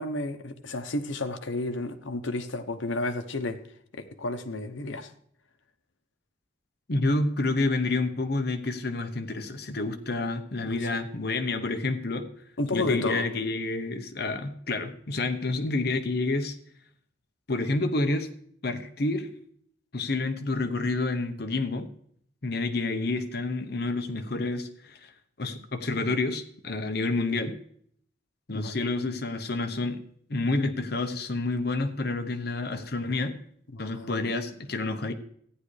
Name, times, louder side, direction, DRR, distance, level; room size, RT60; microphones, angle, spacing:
voice 1, 0.0-3.6 3.9-5.1 10.7-10.9 12.6-13.3 28.5-28.9 33.7-34.1, left 2 dB, 85° left, 8 dB, 0.9 m, -32 dB
voice 2, 6.9-12.3 12.7-16.5 17.5-18.3 18.6-19.3 19.9-21.9 22.4-25.0 25.4-27.6 28.5-30.0 30.3-33.4 33.8-35.1, left 2 dB, 55° left, 7 dB, 0.9 m, -29 dB
14.0 x 9.8 x 3.3 m, 0.64 s
head